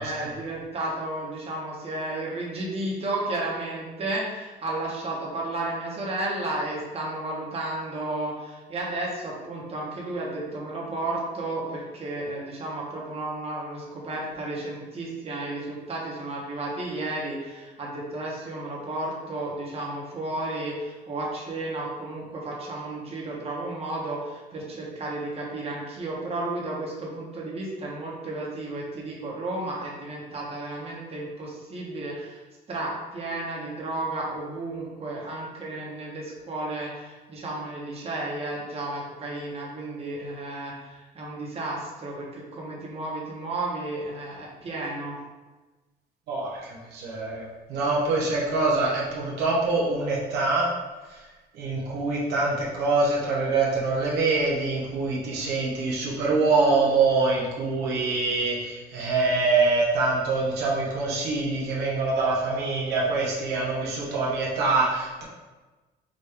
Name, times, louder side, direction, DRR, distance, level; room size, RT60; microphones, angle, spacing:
voice 1, 0.0-32.4 32.7-45.2, right 2 dB, 35° right, -3 dB, 1.2 m, -33 dB
voice 2, 46.3-50.7 51.5-65.2, right 3 dB, 90° right, -4 dB, 1.0 m, -25 dB
5.2 x 2.7 x 3.4 m, 1.2 s
cardioid pair, 110°, 17 cm